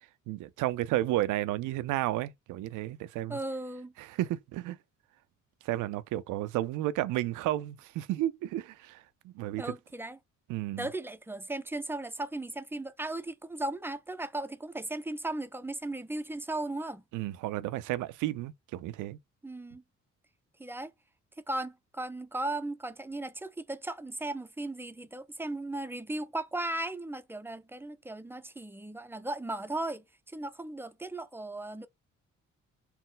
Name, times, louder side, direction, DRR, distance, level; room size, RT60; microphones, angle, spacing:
voice 1, 0.3-3.4 4.0-4.8 5.6-9.7 10.5-10.9 17.1-19.2, right 15 dB, 90° right, 0.5 m, -32 dB
voice 2, 3.3-3.9 9.6-10.2 10.8-17.0 19.4-19.8 20.6-20.9 21.4-31.9, right 2 dB, 10° right, 0.4 m, -36 dB
4.2 x 2.1 x 3.8 m
cardioid pair, 90°, 30 cm